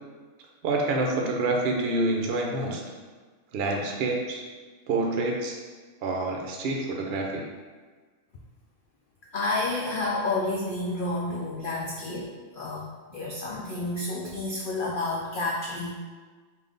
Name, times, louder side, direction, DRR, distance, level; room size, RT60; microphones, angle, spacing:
voice 1, 0.6-2.8 3.5-4.4 4.9-5.6 6.0-7.5, right 2 dB, 65° right, 0 dB, 0.6 m, -27 dB
voice 2, 9.3-15.9, left 2 dB, 85° left, -3 dB, 0.4 m, -30 dB
3.5 x 2.6 x 3.8 m, 1.4 s
omnidirectional pair, 1.4 m